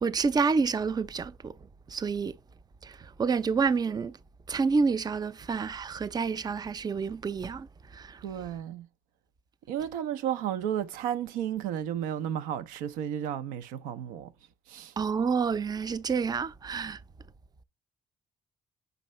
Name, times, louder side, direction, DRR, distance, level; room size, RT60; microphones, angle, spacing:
voice 1, 0.0-1.5 1.9-2.3 2.8-2.9 3.2-4.2 4.5-7.7 7.9-8.2 15.0-17.0, right 5 dB, 30° right, 0.5 m, -28 dB
voice 2, 8.2-8.9 9.7-14.3 14.7-14.9, right 10 dB, 85° right, 0.5 m, -33 dB
7.8 x 5.4 x 3.1 m
supercardioid pair, 60°, 13 cm